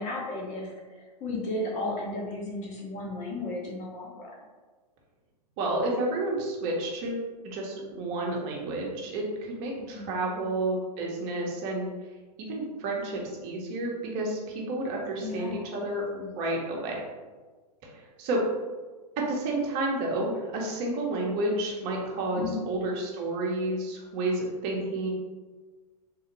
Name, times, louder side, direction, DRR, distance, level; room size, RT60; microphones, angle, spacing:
voice 1, 0.0-4.3 9.9-10.1 15.2-15.6 22.3-22.6, left 2 dB, 35° left, -2 dB, 1.1 m, -34 dB
voice 2, 5.6-11.9 12.4-17.0 17.8-18.4 19.2-25.1, right 2 dB, 45° right, -1 dB, 0.9 m, -30 dB
3.7 x 2.4 x 3.0 m, 1.3 s
hypercardioid pair, 110°, 21 cm